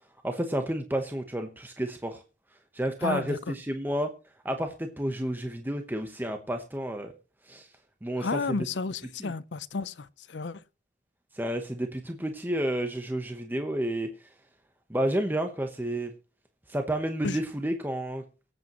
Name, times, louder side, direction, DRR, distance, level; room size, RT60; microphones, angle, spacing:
voice 1, 0.2-2.2 2.7-4.1 4.4-7.1 7.5-7.7 8.0-8.3 9.2-9.3 11.3-14.1 14.9-16.1 16.7-18.2, right 1 dB, 10° right, 1.0 m, -30 dB
voice 2, 3.0-3.5 8.2-10.6 17.2-17.4, left 4 dB, 75° left, 0.6 m, -32 dB
23.5 x 8.2 x 3.0 m
head